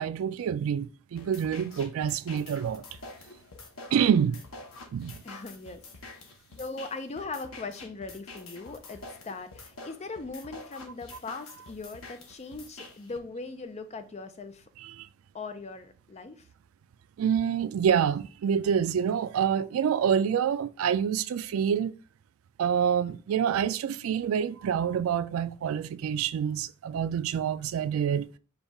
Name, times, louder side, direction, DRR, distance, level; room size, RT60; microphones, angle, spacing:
voice 1, 0.0-2.9 3.9-4.4 4.9-5.2 14.8-15.1 17.2-21.9 22.6-28.3, right 8 dB, 75° right, 0.3 m, -27 dB
sound 1, 1.2-13.2, left 3 dB, 85° left, 0.9 m, -47 dB
voice 2, 5.2-6.2 6.6-14.7 15.3-16.5, left 3 dB, 30° left, 0.5 m, -40 dB
5.3 x 2.3 x 4.0 m
head